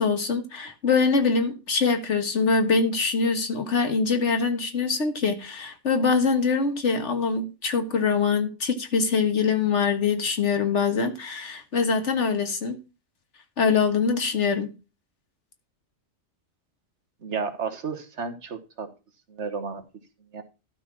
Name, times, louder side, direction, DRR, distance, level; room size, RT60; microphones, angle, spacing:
voice 1, 0.0-12.8 13.6-14.7, left 5 dB, 65° left, 1.7 m, -24 dB
voice 2, 17.2-18.9 19.3-19.8 20.3-20.4, right 5 dB, 65° right, 1.5 m, -32 dB
12.5 x 4.3 x 5.9 m
omnidirectional pair, 1.3 m